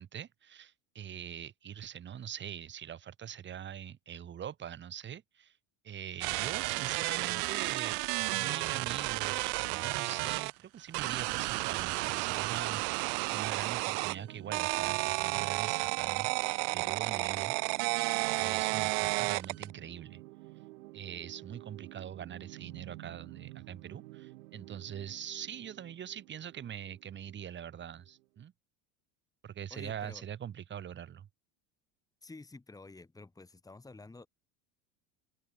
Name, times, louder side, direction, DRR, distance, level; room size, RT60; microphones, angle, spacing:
voice 1, 0.0-5.6 5.8-13.0 13.3-16.3 16.7-17.5 18.4-20.2 20.9-28.5 29.4-31.3, right 9 dB, 30° right, 1.2 m, -43 dB
sound 1, 6.2-10.5 10.9-14.2 14.5-19.7, right 40 dB or more, 70° right, 1.0 m, -32 dB
sound 2, 11.3-28.2, right 21 dB, 85° right, 2.1 m, -50 dB
voice 2, 29.7-30.2 32.2-34.3, left 3 dB, 10° left, 2.0 m, -50 dB
open air
supercardioid pair, 115°, 38 cm